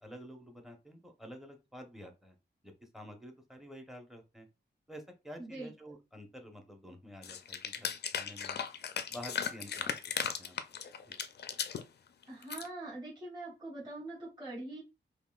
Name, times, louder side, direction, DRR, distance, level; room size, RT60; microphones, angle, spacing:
voice 1, 0.0-2.3 2.6-4.5 4.9-8.6 9.1-9.9 10.4-10.6 11.1-11.2, equal, ahead, 4 dB, 0.8 m, -49 dB
voice 2, 5.4-5.7 12.3-14.8, right 2 dB, 25° right, -8 dB, 2.3 m, -43 dB
sound 1, 7.2-11.8 12.2-12.7, left 7 dB, 65° left, 0.4 m, -37 dB
5.4 x 2.4 x 2.3 m, 0.27 s
wide cardioid pair, 115°, 18 cm